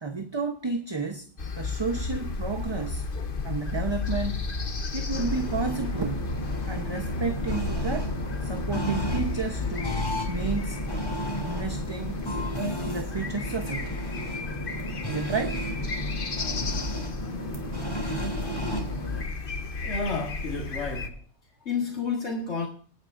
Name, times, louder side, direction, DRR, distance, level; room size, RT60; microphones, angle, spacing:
voice 1, 0.0-3.0 3.4-4.6 4.9-6.3 6.7-8.1 8.4-10.8 11.4-12.2 12.9-14.0 15.1-15.6, right 4 dB, 25° right, 0.9 m, -32 dB
sound 1, 1.4-21.1, left 3 dB, 55° left, 1.3 m, -33 dB
sound 2, 5.1-19.2, equal, 25° left, 3.1 m, -34 dB
voice 2, 19.8-21.2 21.6-22.7, left 4 dB, 85° left, 2.0 m, -30 dB
25.0 x 9.2 x 2.6 m
omnidirectional pair, 1.1 m